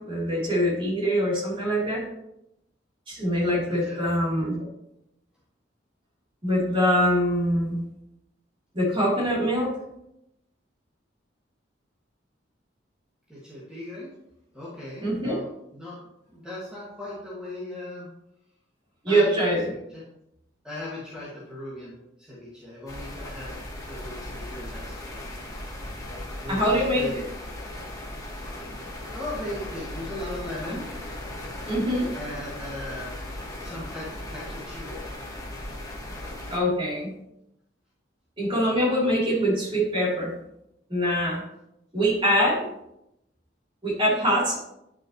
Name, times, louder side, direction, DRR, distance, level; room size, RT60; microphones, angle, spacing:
voice 1, 0.1-2.0 3.1-4.7 6.4-7.8 8.7-9.7 15.0-15.4 19.0-19.7 26.5-27.1 31.7-32.1 36.5-37.1 38.4-40.3 40.9-41.4 41.9-42.7 43.8-44.6, equal, 30° right, -6 dB, 3.4 m, -23 dB
voice 2, 3.7-4.0 13.3-14.1 14.5-15.5 15.7-16.0 16.3-18.1 19.1-19.4 19.6-20.0 20.6-23.6 23.8-25.2 26.4-27.2 29.1-30.8 32.1-33.1 33.6-35.0, left 1 dB, 5° right, -9 dB, 2.0 m, -38 dB
sound 1, 22.9-36.6, left 1 dB, 20° left, 1.5 m, -37 dB
10.5 x 6.2 x 3.1 m, 0.83 s
head